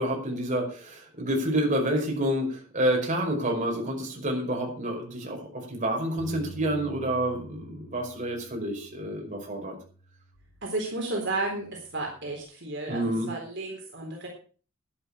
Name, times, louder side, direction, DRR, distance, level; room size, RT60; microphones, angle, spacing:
voice 1, 0.0-9.8 12.9-13.3, right 1 dB, 35° right, 1 dB, 5.2 m, -28 dB
Bass guitar, 6.2-10.6 11.3-12.4, right 1 dB, 45° left, 2.7 m, -48 dB
voice 2, 10.6-14.3, right 2 dB, 55° right, 0 dB, 4.0 m, -33 dB
12.0 x 11.0 x 6.3 m, 0.40 s
head